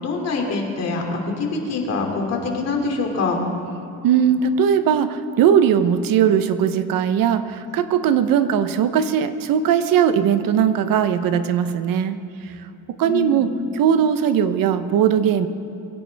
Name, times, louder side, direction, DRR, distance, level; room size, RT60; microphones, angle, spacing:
voice 1, 0.0-3.4 13.0-13.5, left 3 dB, 45° left, 1 dB, 2.8 m, -24 dB
voice 2, 4.0-12.5 13.0-13.5 13.7-15.5, right 8 dB, 65° right, 11 dB, 1.0 m, -19 dB
23.5 x 16.5 x 3.5 m, 2.8 s
cardioid pair, 155°, 37 cm